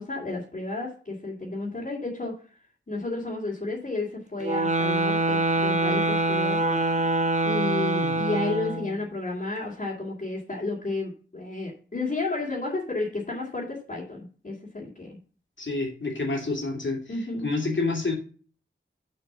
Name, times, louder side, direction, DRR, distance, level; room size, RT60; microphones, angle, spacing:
voice 1, 0.0-2.3 2.9-6.6 7.4-15.2 17.1-17.5, left 2 dB, 40° left, -6 dB, 2.6 m, -32 dB
sound 1, 4.4-9.0, right 2 dB, 35° right, 1.0 m, -25 dB
voice 2, 15.6-17.0 17.4-18.1, left 3 dB, 65° left, 1 dB, 2.9 m, -28 dB
6.9 x 5.7 x 6.9 m, 0.40 s
wide cardioid pair, 85°, 21 cm